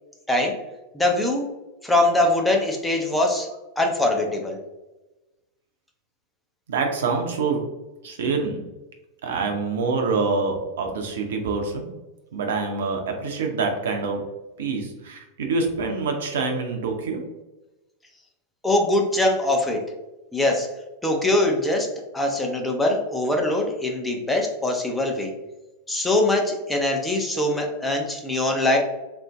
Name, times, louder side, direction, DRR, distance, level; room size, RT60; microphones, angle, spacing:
voice 1, 0.3-0.6 0.9-1.4 1.8-3.5 3.8-4.6 18.6-19.8 20.3-20.7 21.0-21.9 22.1-25.3 25.9-28.8, left 1 dB, 5° left, 0 dB, 0.6 m, -22 dB
voice 2, 6.7-7.6 8.0-8.6 9.2-11.9 12.3-14.2 14.6-17.2, right 4 dB, 60° right, 3 dB, 0.5 m, -26 dB
3.7 x 2.5 x 2.2 m, 1.1 s
figure-of-eight pair, 90°, 0 cm